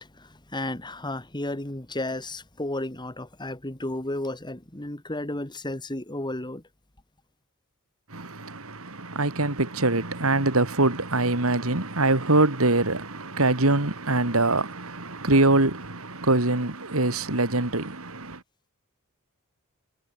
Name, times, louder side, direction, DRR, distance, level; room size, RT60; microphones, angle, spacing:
voice 1, 0.0-6.6, left 1 dB, 20° left, 2.2 m, -33 dB
voice 2, 8.1-18.4, right 2 dB, 75° right, 3.1 m, -24 dB
head